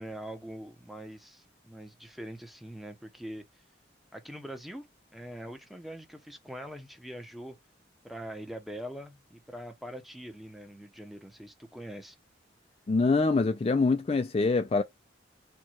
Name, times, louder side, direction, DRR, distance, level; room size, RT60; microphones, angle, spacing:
voice 1, 0.0-3.6 4.1-4.9 5.1-7.6 8.0-12.2, equal, ahead, 0.7 m, -43 dB
voice 2, 12.9-14.8, left 3 dB, 30° left, 0.3 m, -25 dB
4.5 x 2.3 x 4.4 m
head